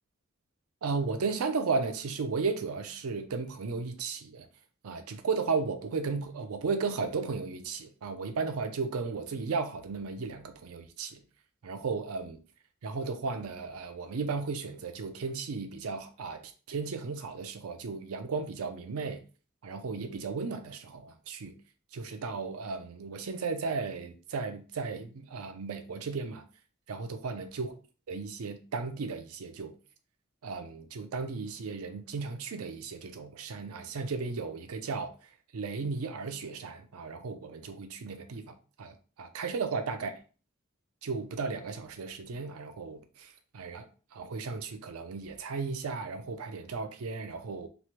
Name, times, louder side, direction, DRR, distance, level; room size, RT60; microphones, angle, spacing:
voice 1, 0.8-4.5 4.8-11.2 11.6-12.4 12.8-19.2 19.6-21.5 21.9-26.4 26.9-27.7 28.1-29.7 30.4-35.1 35.5-40.1 41.0-43.9 44.1-47.7, right 4 dB, 90° right, 0.5 m, -35 dB
3.0 x 2.1 x 2.9 m
head